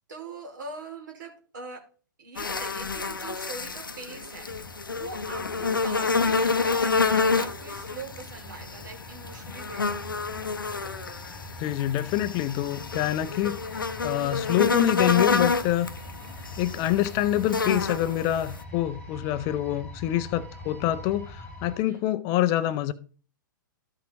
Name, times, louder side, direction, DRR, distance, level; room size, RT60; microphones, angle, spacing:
voice 1, 0.1-1.8 2.2-10.0 16.0-16.4 21.8-22.1, right 3 dB, 65° right, 2.6 m, -42 dB
sound 1, 2.4-18.6, left 4 dB, 80° left, 0.7 m, -29 dB
sound 2, 4.5-21.8, left 1 dB, 10° left, 1.7 m, -44 dB
voice 2, 11.6-13.6 14.0-15.9 16.6-22.9, left 13 dB, 30° left, 0.5 m, -26 dB
13.5 x 6.0 x 2.9 m
figure-of-eight pair, 110°, 11 cm